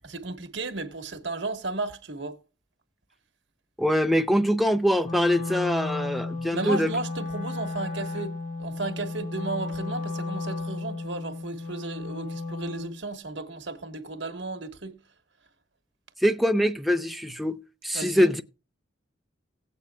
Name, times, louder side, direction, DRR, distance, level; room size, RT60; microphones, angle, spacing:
voice 1, 0.1-2.4 6.5-15.0 17.9-18.3, right 2 dB, 80° right, 1.4 m, -34 dB
voice 2, 3.8-6.9 16.2-18.5, equal, ahead, 0.5 m, -24 dB
Wind instrument woodwind instrument, 5.0-13.0, left 3 dB, 40° left, 0.6 m, -34 dB
17.0 x 8.4 x 2.3 m
head